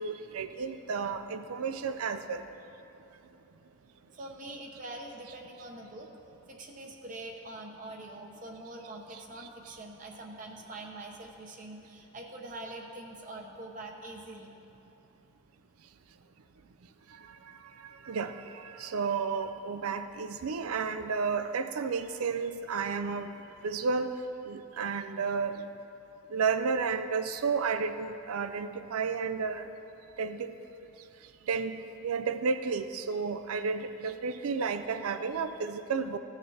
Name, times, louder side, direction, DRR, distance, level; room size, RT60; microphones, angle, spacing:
voice 1, 0.0-2.4 18.0-23.3 23.6-24.1 24.5-25.6 26.3-29.7 30.2-30.5 31.5-36.2, right 5 dB, 85° right, 10 dB, 0.5 m, -32 dB
voice 2, 4.2-6.1 6.5-14.5, right 2 dB, 35° right, 1 dB, 0.8 m, -44 dB
16.0 x 6.5 x 3.3 m, 2.9 s
head